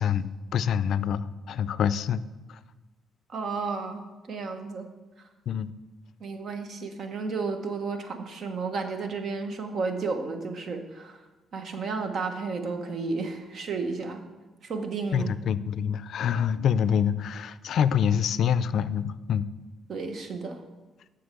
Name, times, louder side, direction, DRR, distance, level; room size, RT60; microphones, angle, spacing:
voice 1, 0.0-2.2 5.5-5.7 15.1-19.4, left 8 dB, 70° left, 16 dB, 0.4 m, -26 dB
voice 2, 3.3-4.0 4.3-4.9 6.2-11.2 11.5-14.2 14.6-15.4 19.9-20.6, right 4 dB, 60° right, 6 dB, 1.2 m, -32 dB
7.8 x 6.4 x 6.8 m, 1.2 s
cardioid pair, 90°, 0 cm